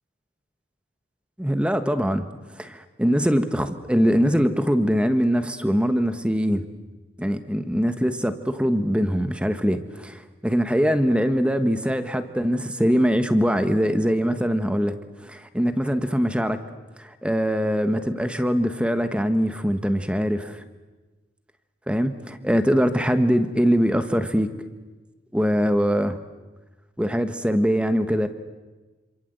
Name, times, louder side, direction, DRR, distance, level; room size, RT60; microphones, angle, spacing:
voice 1, 1.4-2.3 2.6-6.6 7.2-16.6 17.0-20.6 21.9-24.5 25.3-26.2 27.0-28.3, equal, 5° right, 10 dB, 1.3 m, -22 dB
27.5 x 27.0 x 8.1 m, 1.2 s
head